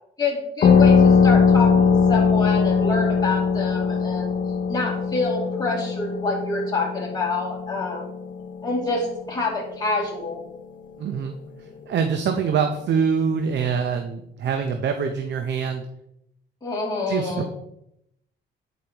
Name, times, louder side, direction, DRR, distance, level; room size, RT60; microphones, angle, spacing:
voice 1, 0.2-4.3 4.7-8.1 8.6-10.4 16.6-17.5, left 3 dB, 20° left, -4 dB, 2.5 m, -27 dB
sound 1, 0.6-9.8, left 5 dB, 45° left, 0.8 m, -20 dB
voice 2, 11.0-11.4 11.9-15.9 17.1-17.5, right 6 dB, 60° right, 6 dB, 0.7 m, -24 dB
9.5 x 5.1 x 2.9 m, 0.78 s
cardioid pair, 90°, 20 cm